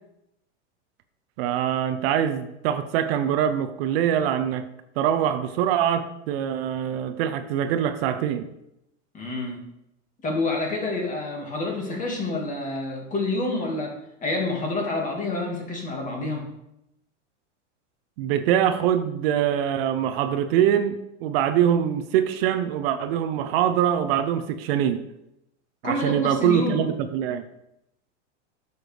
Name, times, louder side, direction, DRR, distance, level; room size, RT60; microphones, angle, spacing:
voice 1, 1.4-4.7 5.0-8.5 18.2-25.0 25.8-27.4, right 10 dB, 55° right, 10 dB, 0.7 m, -23 dB
voice 2, 9.1-9.6 10.2-14.0 14.2-16.5 25.8-26.8, left 2 dB, 20° left, 0 dB, 2.0 m, -28 dB
8.8 x 6.8 x 3.4 m, 0.84 s
supercardioid pair, 135°, 36 cm